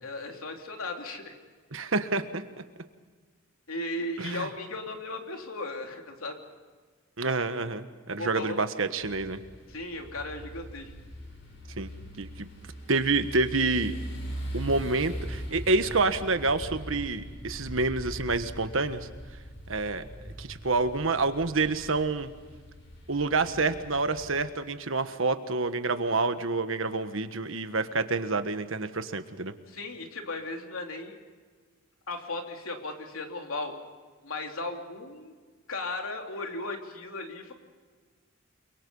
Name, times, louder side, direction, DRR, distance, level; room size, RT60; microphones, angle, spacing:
voice 1, 0.0-1.3 3.7-6.4 8.2-8.7 9.7-10.9 29.7-31.1 32.1-33.7 34.2-35.4 35.7-37.5, left 2 dB, 85° left, 3 dB, 3.4 m, -36 dB
voice 2, 1.7-2.4 4.2-4.5 7.2-9.4 11.8-11.9 12.2-12.5 12.9-13.9 14.5-19.1 19.7-20.0 20.4-22.3 23.1-29.5, right 3 dB, 70° right, 10 dB, 1.4 m, -28 dB
sound 1, 9.0-24.4, equal, 65° left, 7.2 m, -41 dB
29.0 x 23.0 x 5.5 m, 1.5 s
head